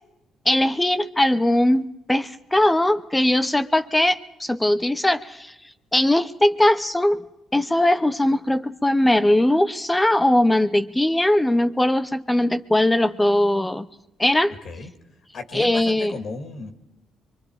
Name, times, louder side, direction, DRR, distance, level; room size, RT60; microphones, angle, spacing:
voice 1, 0.5-5.5 5.9-7.2 7.5-13.9 14.2-14.5 15.5-16.1, left 1 dB, 10° left, 12 dB, 0.8 m, -20 dB
voice 2, 15.3-16.7, left 3 dB, 65° left, 6 dB, 2.5 m, -34 dB
24.0 x 23.5 x 4.9 m, 0.90 s
cardioid pair, 90°, 0 cm